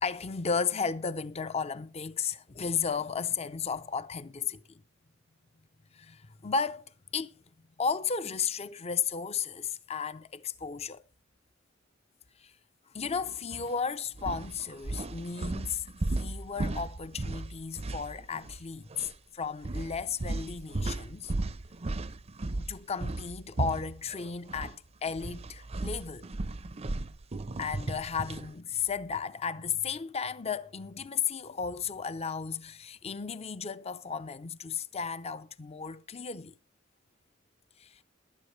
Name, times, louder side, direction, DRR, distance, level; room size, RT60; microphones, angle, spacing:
voice 1, 0.0-4.8 5.9-7.4 7.8-11.0 12.4-12.5 12.9-15.9 16.2-21.3 22.6-26.3 27.6-36.5 37.8-38.0, left 6 dB, 30° left, 0.6 m, -34 dB
sound 1, 13.5-13.7 14.2-18.6 18.9-19.1 19.6-24.8 25.1-28.5, right 2 dB, 30° right, 0.6 m, -35 dB
21.5 x 8.0 x 3.2 m
head